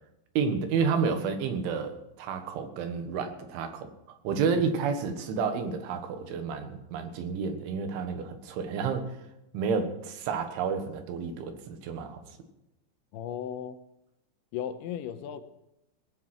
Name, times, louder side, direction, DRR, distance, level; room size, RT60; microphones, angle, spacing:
voice 1, 0.4-3.9 4.3-9.2 9.5-12.2, right 5 dB, 90° right, 7 dB, 3.9 m, -30 dB
voice 2, 13.1-13.8 14.5-15.4, left 9 dB, 90° left, 10 dB, 3.1 m, -35 dB
19.0 x 8.9 x 6.1 m, 0.87 s
omnidirectional pair, 5.3 m